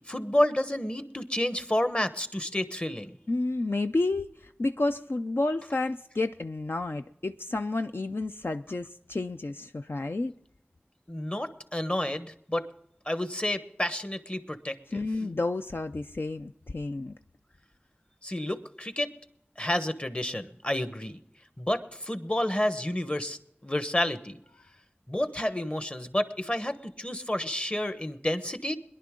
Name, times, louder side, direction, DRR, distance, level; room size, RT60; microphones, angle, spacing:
voice 1, 0.0-3.1 11.1-12.7 13.1-15.3 18.2-19.1 19.6-21.2 21.6-24.4 25.1-28.8, left 1 dB, 25° left, 1.1 m, -30 dB
voice 2, 3.3-10.3 14.9-17.1, left 2 dB, 65° left, 0.4 m, -30 dB
22.0 x 11.0 x 3.7 m
wide cardioid pair, 45°, 4 cm